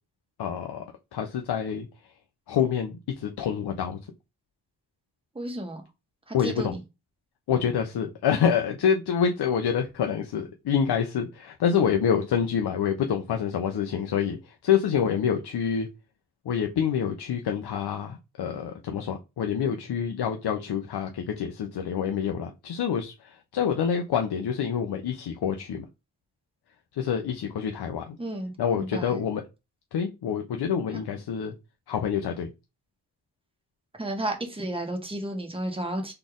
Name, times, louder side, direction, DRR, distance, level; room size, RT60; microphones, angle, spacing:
voice 1, 0.4-0.8 1.1-1.9 2.5-4.0 6.3-6.7 7.5-15.9 16.4-25.8 26.9-28.2 28.6-29.4 29.9-31.5 31.9-32.5, left 7 dB, 90° left, 0.8 m, -27 dB
voice 2, 5.3-5.8 6.3-6.8 28.2-29.2 30.9-31.0 34.0-36.1, right 1 dB, 15° right, 1.3 m, -32 dB
4.1 x 3.3 x 3.7 m
wide cardioid pair, 120°, 39 cm